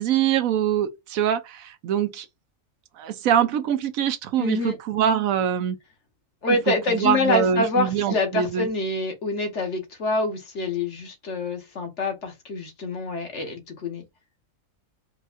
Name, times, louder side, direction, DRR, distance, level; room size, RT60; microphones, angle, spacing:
voice 1, 0.0-2.3 3.0-5.8 6.7-8.7, right 9 dB, 85° right, 1.1 m, -24 dB
voice 2, 4.4-4.8 6.4-14.0, left 2 dB, 60° left, 1.4 m, -26 dB
4.5 x 2.2 x 2.5 m
omnidirectional pair, 1.4 m